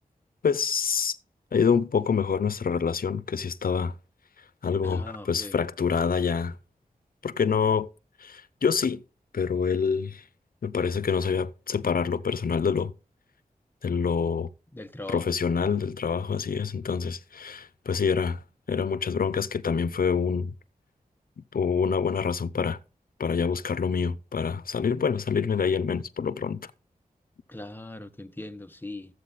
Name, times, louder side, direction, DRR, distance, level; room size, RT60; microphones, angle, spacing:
voice 1, 0.4-1.2 1.5-3.9 4.6-6.5 7.2-7.9 8.2-9.0 9.3-10.2 10.6-12.9 13.8-14.5 15.1-18.4 18.7-20.5 21.4-22.8 23.2-26.7, left 6 dB, 80° left, 0.7 m, -26 dB
voice 2, 4.8-5.5 14.7-15.3 27.5-29.1, left 2 dB, 15° left, 1.0 m, -40 dB
13.5 x 8.1 x 4.1 m
wide cardioid pair, 90°, 15 cm